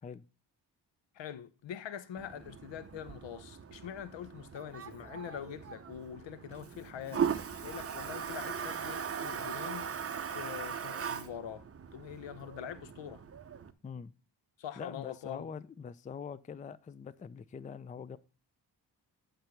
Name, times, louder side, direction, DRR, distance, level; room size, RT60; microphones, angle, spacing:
voice 1, 1.1-7.3 7.6-9.9 10.3-11.7 11.9-13.2 14.6-15.5, left 9 dB, 70° left, 0.8 m, -44 dB
Toilet flush, 2.2-13.7, right 7 dB, 30° right, 0.7 m, -39 dB
voice 2, 14.8-18.2, left 6 dB, 20° left, 0.4 m, -44 dB
9.2 x 3.4 x 5.8 m
cardioid pair, 65°, 45 cm